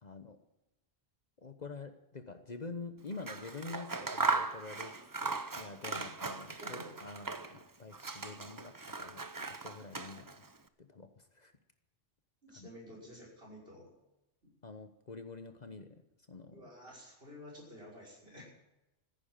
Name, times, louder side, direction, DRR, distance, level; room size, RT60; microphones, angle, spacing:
voice 1, 0.0-0.4 1.4-10.4 10.8-11.5 12.5-12.7 14.6-16.0 16.3-16.6 18.3-18.4, left 3 dB, 45° left, 8 dB, 1.1 m, -47 dB
Scissors, 3.1-7.6 7.9-10.5, right 3 dB, 25° right, 0.6 m, -38 dB
voice 2, 12.4-13.9 14.4-14.5 16.5-18.5, left 1 dB, 65° right, -2 dB, 6.1 m, -51 dB
14.5 x 10.5 x 9.0 m, 0.98 s
omnidirectional pair, 1.1 m